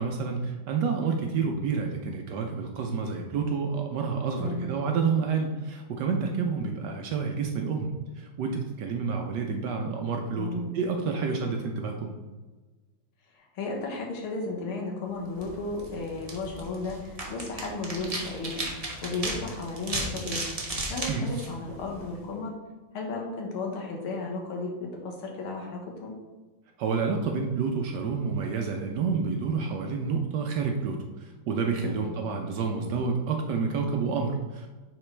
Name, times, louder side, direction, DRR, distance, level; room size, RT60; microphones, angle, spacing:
voice 1, 0.0-12.1 21.1-21.3 26.8-34.7, right 5 dB, 70° right, 3 dB, 1.1 m, -29 dB
voice 2, 4.4-4.7 10.4-10.8 13.4-20.5 20.9-22.5 22.9-24.7 25.0-26.1 31.8-32.1, left 3 dB, 85° left, 0 dB, 2.1 m, -34 dB
sound 1, 15.3-22.2, right 2 dB, 45° right, 0.4 m, -36 dB
9.1 x 3.9 x 3.3 m, 1.3 s
omnidirectional pair, 2.3 m